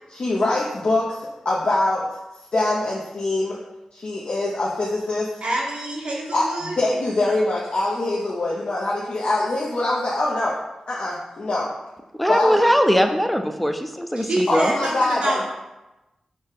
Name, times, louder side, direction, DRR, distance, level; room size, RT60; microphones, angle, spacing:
voice 1, 0.1-1.2 1.4-2.0 2.5-3.6 3.9-5.3 6.3-10.6 10.9-11.7 12.3-12.6 14.5-15.4, left 2 dB, 65° left, -5 dB, 0.5 m, -23 dB
voice 2, 5.4-6.7 14.2-15.4, right 1 dB, 70° right, -3 dB, 0.7 m, -26 dB
voice 3, 12.2-14.8, equal, 5° left, 6 dB, 0.4 m, -20 dB
3.9 x 2.0 x 3.6 m, 1.0 s
cardioid pair, 50°, 2 cm